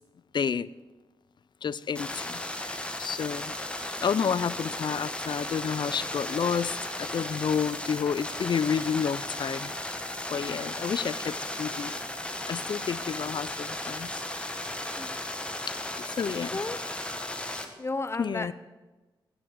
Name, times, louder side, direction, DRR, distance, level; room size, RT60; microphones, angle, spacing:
voice 1, 0.3-0.7 1.6-3.5 4.0-9.7 10.3-11.9 12.5-14.2 15.7-16.5 18.2-18.5, left 7 dB, 60° left, 19 dB, 0.5 m, -30 dB
sound 1, 2.0-17.7, left 1 dB, 10° left, 1.7 m, -35 dB
voice 2, 16.2-16.8 17.8-18.5, left 3 dB, 30° left, 13 dB, 0.7 m, -33 dB
15.0 x 10.0 x 7.4 m, 1.2 s
wide cardioid pair, 105°, 9 cm